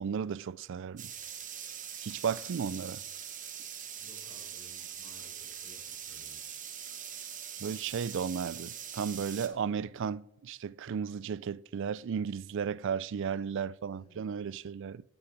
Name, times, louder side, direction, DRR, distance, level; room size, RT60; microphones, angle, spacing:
voice 1, 0.0-1.1 2.0-3.0 7.6-15.0, right 7 dB, 60° right, 0.4 m, -34 dB
sound 1, 1.0-9.5, right 8 dB, 40° right, 1.2 m, -43 dB
voice 2, 4.0-6.7 13.9-14.2, left 1 dB, 25° left, 5.2 m, -59 dB
17.5 x 6.9 x 4.8 m
head